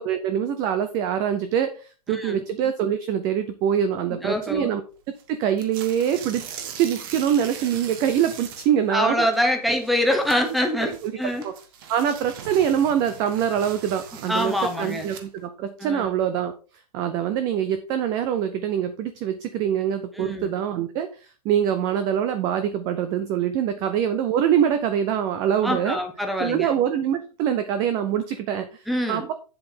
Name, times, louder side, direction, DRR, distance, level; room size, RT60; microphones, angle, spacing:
voice 1, 0.0-4.8 5.3-6.5 6.8-9.5 10.8-11.1 11.4-11.5 11.9-16.5 16.9-26.0 26.4-29.3, right 9 dB, 15° right, 10 dB, 0.4 m, -24 dB
voice 2, 2.1-2.4 4.2-4.7 8.9-11.4 14.3-15.1 15.8-16.1 20.1-20.5 25.6-26.7 28.9-29.3, equal, ahead, 5 dB, 0.9 m, -25 dB
sound 1, 5.2-5.3 5.5-8.8 9.1-9.4 9.7-15.4, right 8 dB, 35° right, 1.2 m, -40 dB
8.5 x 7.6 x 3.7 m, 0.35 s
hypercardioid pair, 170°, 20 cm